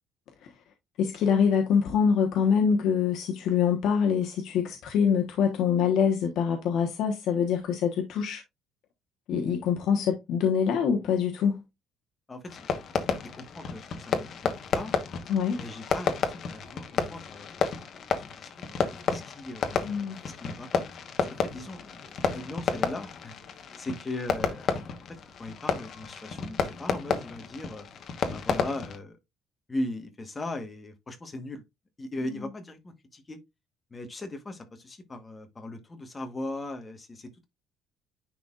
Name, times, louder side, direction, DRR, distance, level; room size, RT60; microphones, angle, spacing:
voice 1, 1.0-8.4 9.3-11.6 15.3-15.6 19.8-20.2 32.3-32.4, left 7 dB, 65° left, 1.1 m, -25 dB
voice 2, 12.3-12.7 13.0-14.9 15.5-18.8 19.1-20.8 21.3-23.3 23.8-24.7 25.1-27.9 28.3-29.2 29.7-31.6 32.0-33.4 33.9-37.5, left 2 dB, 15° left, 1.2 m, -39 dB
Fireworks, 12.5-29.0, left 6 dB, 45° left, 1.2 m, -31 dB
10.0 x 4.0 x 2.4 m
cardioid pair, 160°, 0 cm